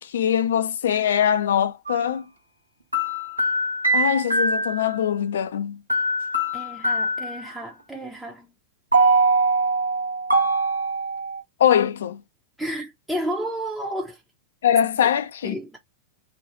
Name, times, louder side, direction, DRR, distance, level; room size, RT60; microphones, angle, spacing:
voice 1, 0.0-2.2 3.9-5.8 11.6-12.2 14.6-15.6, left 9 dB, 65° left, 0.4 m, -22 dB
sound 1, 1.9-2.0 2.9-4.9 5.9-7.5 8.9-11.4, right 2 dB, 85° right, 0.7 m, -22 dB
voice 2, 6.5-8.5 12.6-14.2 15.4-15.8, equal, 5° right, 0.5 m, -31 dB
2.5 x 2.3 x 2.9 m
figure-of-eight pair, 90°, 0 cm